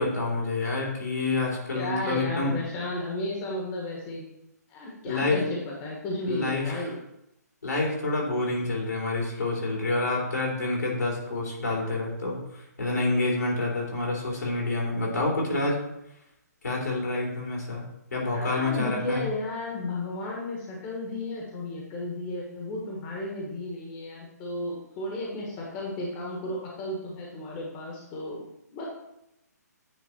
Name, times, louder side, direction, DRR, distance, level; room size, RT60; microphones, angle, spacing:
voice 1, 0.0-2.5 5.0-5.4 6.2-6.9 7.6-15.8 16.6-17.8 18.1-19.2, left 2 dB, 75° left, -2 dB, 3.0 m, -28 dB
voice 2, 1.7-4.2 4.7-7.0 18.3-28.4 28.7-28.8, left 1 dB, 25° left, -2 dB, 1.4 m, -33 dB
9.1 x 3.8 x 4.4 m, 0.83 s
figure-of-eight pair, 135°, 9 cm